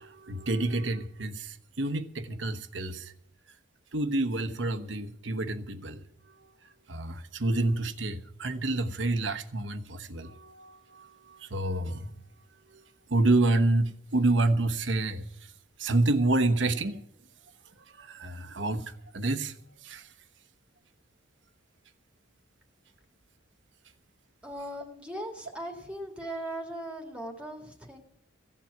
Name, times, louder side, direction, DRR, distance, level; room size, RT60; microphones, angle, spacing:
voice 1, 0.0-3.1 3.5-3.6 3.9-12.2 12.6-12.8 13.1-15.5 15.8-17.0 17.8-20.1, right 2 dB, 70° right, 1.1 m, -29 dB
voice 2, 24.4-28.0, right 1 dB, 5° right, 1.9 m, -38 dB
15.5 x 7.5 x 9.3 m
head